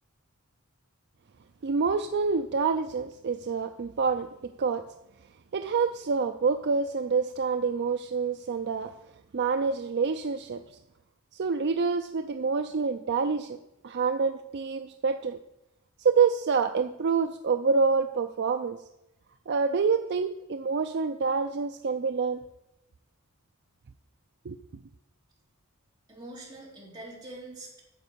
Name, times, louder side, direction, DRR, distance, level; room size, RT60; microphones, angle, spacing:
voice 1, 1.6-4.3 4.6-4.9 5.5-8.9 9.3-10.8 11.3-13.6 13.8-15.4 16.0-18.8 19.5-22.4 24.5-24.6, right 5 dB, 50° right, 8 dB, 0.4 m, -27 dB
voice 2, 26.1-27.8, right 2 dB, 20° right, -5 dB, 3.5 m, -44 dB
9.5 x 7.3 x 6.8 m, 0.90 s
head